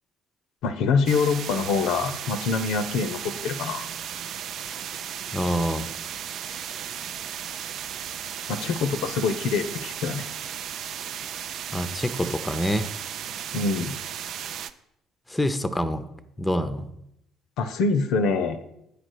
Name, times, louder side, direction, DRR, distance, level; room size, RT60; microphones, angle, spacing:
voice 1, 0.6-3.8 8.5-10.3 13.5-14.0 17.6-18.6, left 4 dB, 60° left, 9 dB, 0.6 m, -25 dB
sound 1, 1.1-14.7, right 9 dB, 55° right, 0.4 m, -35 dB
voice 2, 5.3-5.9 11.7-12.9 15.3-16.0 16.4-16.9, equal, 10° left, 11 dB, 0.7 m, -26 dB
8.6 x 5.0 x 6.2 m, 0.81 s
figure-of-eight pair, 50°, 0 cm